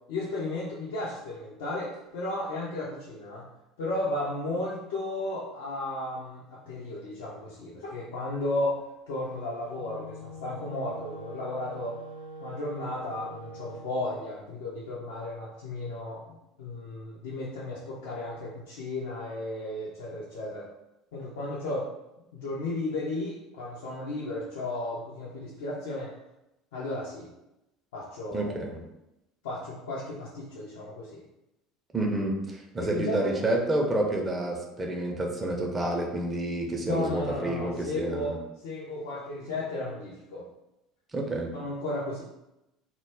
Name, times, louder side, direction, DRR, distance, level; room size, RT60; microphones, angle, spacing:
voice 1, 0.1-3.5 3.8-12.0 12.4-20.7 21.1-21.9 22.3-26.1 26.7-27.3 27.9-28.7 29.4-31.2 32.8-33.4 36.8-40.5 41.5-42.2, left 2 dB, 70° left, -6 dB, 0.4 m, -34 dB
Wind instrument woodwind instrument, 9.6-14.2, right 1 dB, 70° right, 0.6 m, -43 dB
voice 2, 28.3-28.8 31.9-38.4 41.1-41.5, right 1 dB, 25° right, 1 dB, 0.5 m, -29 dB
2.2 x 2.0 x 3.3 m, 0.91 s
figure-of-eight pair, 65°, 0 cm